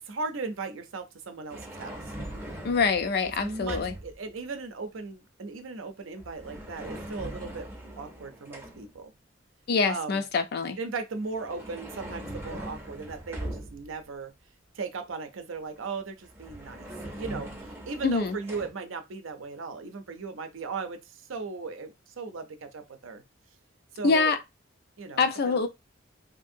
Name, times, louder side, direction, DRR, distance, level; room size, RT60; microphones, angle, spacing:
voice 1, 0.0-2.1 3.4-7.7 8.0-9.1 9.9-10.2 10.8-14.3 14.7-16.9 17.2-23.2 23.9-24.3 25.0-25.7, right 4 dB, 80° right, 0.6 m, -37 dB
sound 1, 1.5-4.2 6.2-9.0 11.1-14.0 16.0-16.1 16.3-18.7, right 1 dB, 10° right, 0.6 m, -41 dB
voice 2, 2.6-3.9 9.7-10.8 18.0-18.4 24.0-24.4 25.2-25.7, left 4 dB, 55° left, 0.4 m, -25 dB
2.7 x 2.7 x 2.6 m
head